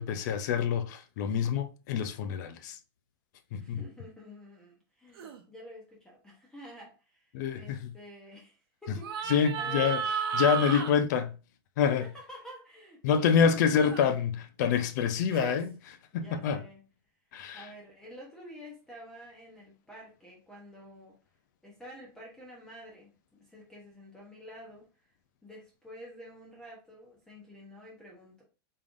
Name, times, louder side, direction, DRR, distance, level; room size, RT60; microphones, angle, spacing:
voice 1, 0.0-2.8 3.5-3.8 7.3-7.9 9.3-10.0 10.3-11.4 11.8-12.0 13.0-16.6 17.3-17.6, left 7 dB, 45° left, 0.4 m, -27 dB
voice 2, 3.6-10.0 11.8-13.7 16.1-16.8 17.5-21.2 21.6-24.9 25.4-28.4, equal, 5° left, 0.7 m, -49 dB
sound 1, 5.2-5.4 9.0-10.9 13.8-14.1 15.3-15.6, right 7 dB, 70° right, 0.8 m, -33 dB
3.7 x 3.3 x 2.5 m
supercardioid pair, 170°, 13 cm